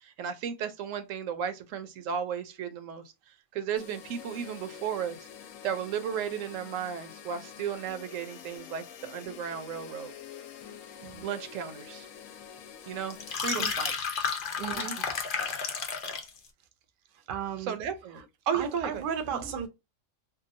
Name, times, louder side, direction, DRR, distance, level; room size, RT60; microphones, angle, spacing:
voice 1, 0.0-5.3 5.6-10.1 11.2-12.1 12.9-13.9 14.6-15.0 17.7-19.0 19.3-19.5, right 8 dB, 75° right, 0.9 m, -34 dB
sound 1, 3.8-13.4, left 8 dB, 85° left, 1.0 m, -47 dB
voice 2, 10.7-11.2 13.5-13.7 14.6-15.0 17.1-17.8 18.1-18.2 18.5-19.7, right 7 dB, 60° right, 0.5 m, -36 dB
sound 2, 13.1-16.4, left 6 dB, 55° left, 0.6 m, -32 dB
2.8 x 2.2 x 2.4 m
omnidirectional pair, 1.4 m